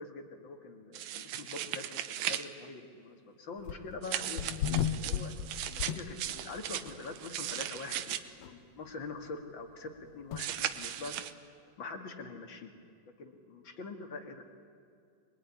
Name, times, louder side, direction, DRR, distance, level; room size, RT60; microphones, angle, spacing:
voice 1, 0.0-4.4 4.9-5.3 5.6-11.1 11.8-12.7 13.2-14.4, left 3 dB, 40° left, 5 dB, 2.4 m, -44 dB
sound 1, 0.9-2.5 4.0-8.2 10.4-11.3, right 11 dB, 85° right, 2.5 m, -37 dB
sound 2, 3.6-4.0 4.4-6.5 6.9-7.0 7.5-7.6 7.9-8.0 8.4-8.5 10.3-10.4, left 9 dB, 65° left, 1.6 m, -34 dB
25.0 x 21.5 x 10.0 m, 2.5 s
omnidirectional pair, 3.7 m